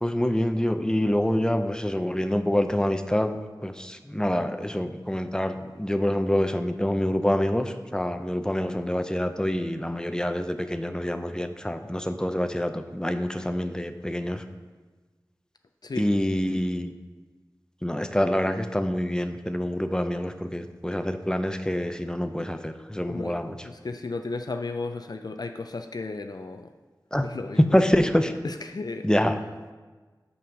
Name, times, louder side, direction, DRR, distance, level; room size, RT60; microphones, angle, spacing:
voice 1, 0.0-14.4 16.0-16.9 17.8-23.6 27.1-27.3 27.7-28.3 29.0-29.4, equal, 10° left, 9 dB, 0.5 m, -26 dB
voice 2, 23.0-23.4 23.6-26.7 27.2-27.8 28.4-29.1, left 3 dB, 60° left, 6 dB, 0.4 m, -34 dB
5.6 x 5.4 x 6.5 m, 1.3 s
wide cardioid pair, 45°, 8 cm